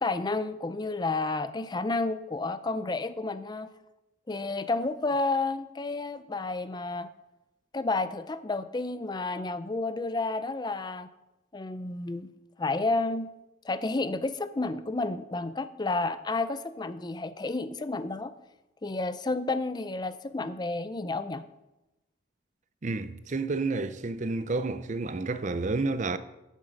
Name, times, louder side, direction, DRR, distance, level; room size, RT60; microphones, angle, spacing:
voice 1, 0.0-3.7 4.3-7.1 7.7-11.1 11.5-12.3 12.6-13.3 13.6-18.3 18.8-21.4, left 3 dB, 20° left, 0.5 m, -31 dB
voice 2, 22.8-26.2, right 3 dB, 40° right, 0.6 m, -30 dB
13.5 x 7.4 x 5.2 m
head